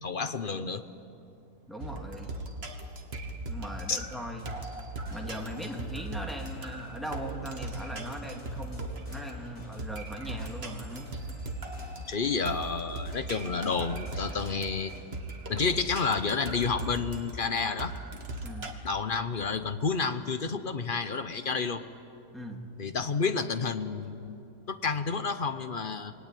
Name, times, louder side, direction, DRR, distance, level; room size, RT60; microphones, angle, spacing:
voice 1, 0.0-0.9 3.9-4.1 12.1-14.9 15.5-17.9 18.8-21.8 22.8-24.4 24.7-26.1, left 5 dB, 40° left, 10 dB, 0.8 m, -30 dB
voice 2, 1.7-2.4 3.5-4.5 5.1-11.2 18.4-18.8 22.3-22.6, equal, ahead, 1 dB, 2.3 m, -39 dB
sound 1, 1.8-18.7, right 1 dB, 40° right, 1.9 m, -39 dB
sound 2, 4.4-15.0, left 1 dB, 65° left, 4.3 m, -52 dB
28.0 x 20.5 x 9.2 m, 2.8 s
omnidirectional pair, 1.7 m